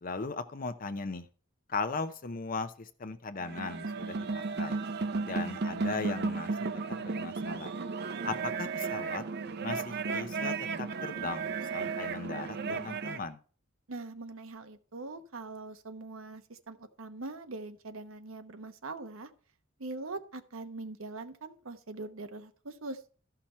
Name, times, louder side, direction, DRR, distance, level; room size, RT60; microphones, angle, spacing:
voice 1, 0.0-1.3 1.7-4.8 5.2-6.5 7.0-7.7 8.2-9.2 9.6-13.4, left 4 dB, 45° left, 10 dB, 0.7 m, -38 dB
sound 1, 3.4-13.2, right 4 dB, 55° right, 0.6 m, -34 dB
voice 2, 13.9-19.3 19.8-23.0, right 3 dB, 90° right, 8 dB, 1.0 m, -42 dB
13.0 x 5.9 x 4.3 m, 0.41 s
head